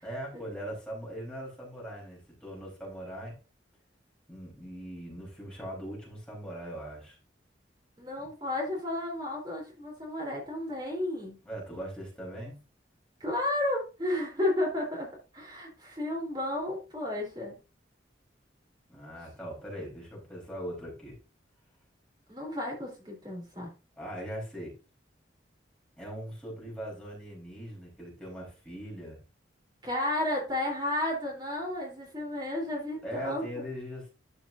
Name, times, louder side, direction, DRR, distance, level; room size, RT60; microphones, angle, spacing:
voice 1, 0.0-3.4 4.3-7.2 8.2-8.3 11.4-12.6 18.9-21.2 24.0-24.8 26.0-29.2 33.0-34.1, equal, 5° left, -4 dB, 4.3 m, -40 dB
voice 2, 8.0-11.4 13.2-15.1 15.3-17.6 22.3-23.7 29.8-33.6, left 1 dB, 25° right, -2 dB, 3.7 m, -32 dB
12.5 x 5.8 x 2.7 m, 0.30 s
head